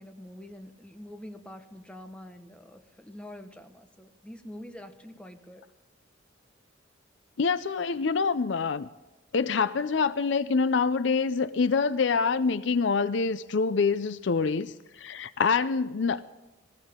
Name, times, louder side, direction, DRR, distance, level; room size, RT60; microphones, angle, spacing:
voice 1, 0.0-5.6, left 1 dB, 5° left, 1.1 m, -45 dB
voice 2, 7.4-8.9 9.3-16.2, left 5 dB, 65° left, 0.5 m, -26 dB
20.0 x 16.0 x 3.7 m
head